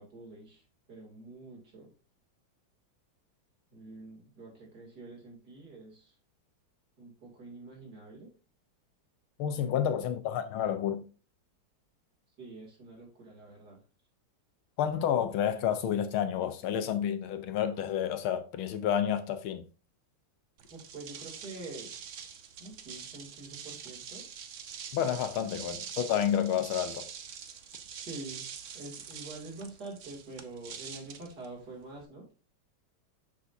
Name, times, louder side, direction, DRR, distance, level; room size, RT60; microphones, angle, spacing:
voice 1, 0.0-1.9 3.7-6.1 7.0-8.3 9.6-10.0 12.4-13.8 20.7-21.9 22.6-24.3 25.4-25.5 28.1-28.5 28.7-32.3, right 2 dB, 50° right, 3.2 m, -46 dB
voice 2, 9.4-11.0 14.8-19.6 24.9-27.1, left 9 dB, 80° left, 1.6 m, -30 dB
sound 1, 20.6-32.0, right 7 dB, 80° right, 0.6 m, -45 dB
7.0 x 6.0 x 2.6 m
omnidirectional pair, 2.3 m